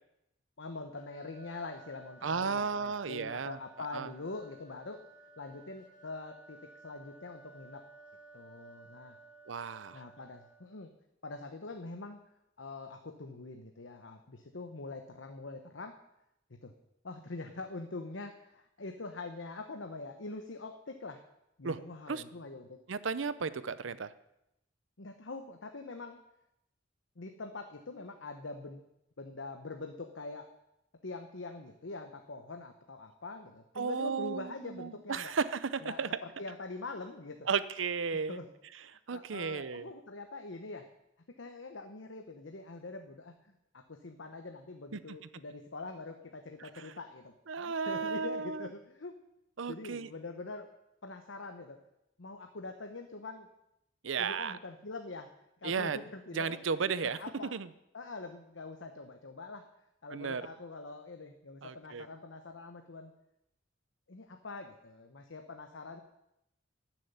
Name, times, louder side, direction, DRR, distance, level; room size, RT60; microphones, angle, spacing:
voice 1, 0.6-7.8 8.3-9.2 9.6-10.9 11.2-12.2 12.6-15.9 16.5-16.7 17.0-21.2 21.6-22.8 25.0-26.2 27.2-28.8 29.2-30.5 31.0-35.3 35.8-36.0 36.4-37.5 38.3-38.5 39.1-40.8 41.3-49.2 49.7-50.7 51.0-51.8 52.2-53.5 54.2-55.3 55.6-57.5 57.9-59.6 60.0-63.1 64.1-66.0, left 3 dB, 75° left, 6 dB, 1.0 m, -44 dB
sound 1, 1.0-10.9, right 2 dB, 45° left, 1.9 m, -57 dB
voice 2, 2.2-3.6 3.9-4.1 9.5-10.0 21.6-21.8 22.1-22.2 22.9-24.1 33.8-36.1 37.5-38.4 39.1-39.9 44.9-45.2 46.8-46.9 47.5-48.7 49.6-50.1 54.0-54.6 55.6-56.0 56.3-57.2 57.5-57.7 60.1-60.4 61.6-62.1, right 5 dB, 80° right, 15 dB, 0.6 m, -34 dB
12.0 x 7.6 x 9.4 m, 0.84 s
head